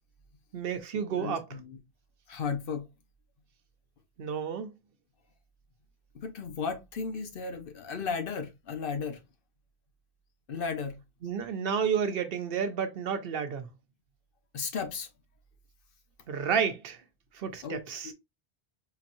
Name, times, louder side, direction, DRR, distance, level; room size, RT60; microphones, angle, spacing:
voice 1, 0.5-1.4 4.2-4.7 11.2-13.7 16.3-17.0 17.3-18.1, right 7 dB, 65° right, 0.8 m, -31 dB
voice 2, 1.1-1.8 2.3-2.9 6.1-9.2 10.5-11.0 14.5-15.1 17.6-18.1, left 5 dB, 60° left, 0.9 m, -35 dB
3.9 x 2.9 x 2.5 m
omnidirectional pair, 1.1 m